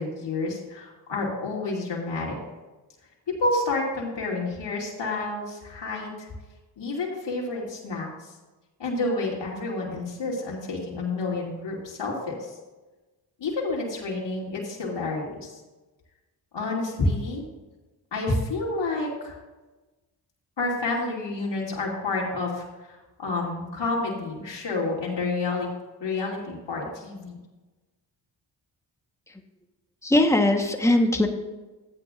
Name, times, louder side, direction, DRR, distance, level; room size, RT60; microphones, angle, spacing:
voice 1, 0.0-2.4 3.3-6.3 6.8-8.1 8.8-12.5 13.4-15.6 16.5-17.4 18.1-19.4 20.6-25.7 26.0-27.4, left 2 dB, 60° left, -3 dB, 2.7 m, -29 dB
voice 2, 30.0-31.3, left 1 dB, 5° left, 4 dB, 1.2 m, -20 dB
13.5 x 8.9 x 2.5 m, 1.2 s
supercardioid pair, 45°, 47 cm